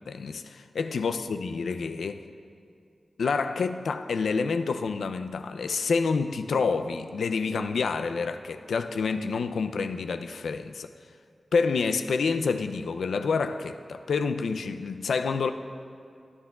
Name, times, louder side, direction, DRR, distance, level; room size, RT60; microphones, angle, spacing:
voice 1, 0.1-2.2 3.2-10.9 11.5-15.5, left 4 dB, 90° left, 0.4 m, -28 dB
16.0 x 9.3 x 2.3 m
cardioid pair, 70°, 0 cm